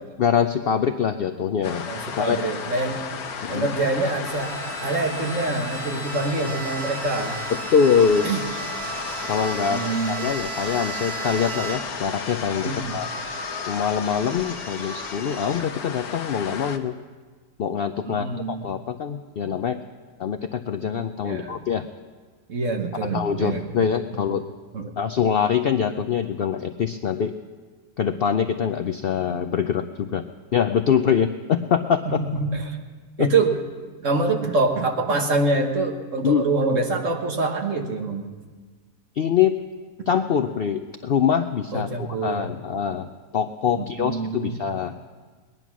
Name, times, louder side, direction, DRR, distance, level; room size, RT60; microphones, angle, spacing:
voice 1, 0.2-1.9 2.2-2.4 3.4-3.7 7.5-8.3 9.3-13.1 13.7-17.0 17.6-19.8 20.2-21.9 23.0-24.5 25.0-27.3 28.0-30.3 30.5-32.2 33.2-33.3 36.2-36.5 39.2-39.6 40.1-45.0, left 7 dB, 65° left, 8 dB, 0.6 m, -24 dB
sound 1, 1.6-16.8, left 6 dB, 85° left, 1.4 m, -34 dB
voice 2, 1.9-3.1 3.5-7.4 8.2-8.4 9.7-10.3 12.6-13.0 18.1-18.7 21.2-21.6 22.5-23.6 24.7-24.9 32.4-32.8 33.2-33.5 34.0-38.3 41.7-42.5 43.7-44.6, right 3 dB, 55° right, 3 dB, 1.8 m, -25 dB
Bowed string instrument, 4.2-12.1, right 8 dB, 90° right, 1.5 m, -36 dB
sound 2, 7.9-15.7, left 2 dB, 30° left, 1.4 m, -38 dB
20.0 x 11.0 x 6.1 m, 1.4 s
omnidirectional pair, 1.6 m